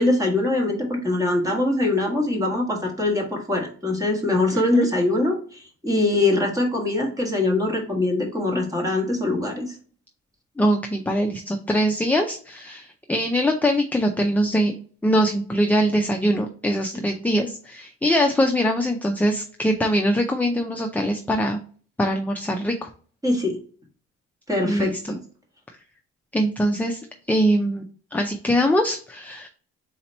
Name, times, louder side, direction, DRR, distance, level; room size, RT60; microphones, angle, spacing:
voice 1, 0.0-9.8 23.2-23.6 24.5-25.2, left 2 dB, 10° right, 0 dB, 1.3 m, -23 dB
voice 2, 4.5-4.9 10.6-14.7 15.0-21.6 22.0-22.9 24.6-25.0 26.3-27.0 27.3-27.8 28.1-29.5, equal, 5° left, 3 dB, 0.4 m, -22 dB
4.0 x 2.9 x 4.2 m, 0.44 s
cardioid pair, 90°, 30 cm